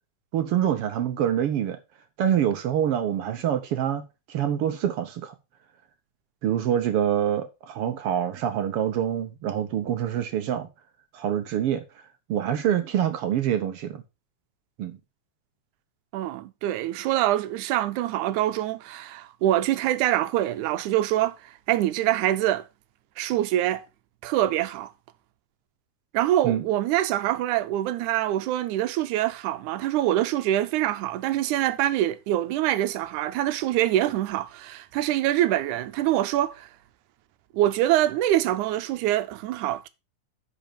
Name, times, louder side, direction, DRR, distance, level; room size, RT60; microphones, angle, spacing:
voice 1, 0.3-1.8 2.2-4.0 4.3-5.3 6.4-10.7 11.1-11.8 12.3-14.0 14.8-15.0 26.4-26.6, right 10 dB, 70° right, 1.4 m, -25 dB
voice 2, 16.1-22.7 23.2-23.8 24.2-24.9 26.1-36.7 37.5-39.9, right 13 dB, 90° right, 2.1 m, -25 dB
10.0 x 5.2 x 4.4 m
omnidirectional pair, 3.4 m